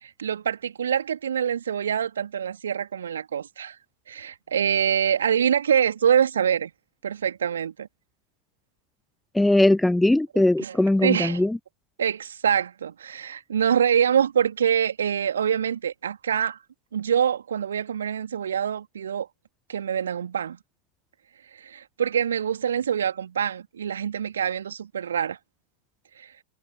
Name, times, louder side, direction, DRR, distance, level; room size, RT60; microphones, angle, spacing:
voice 1, 0.0-3.8 4.1-6.7 7.0-7.9 10.6-10.8 11.0-11.4 12.0-16.6 16.9-19.3 19.7-20.6 21.6-25.4 26.2-26.3, right 8 dB, 65° right, 3.3 m, -25 dB
voice 2, 9.3-11.6, left 1 dB, 5° left, 0.3 m, -20 dB
figure-of-eight pair, 90°, 0 cm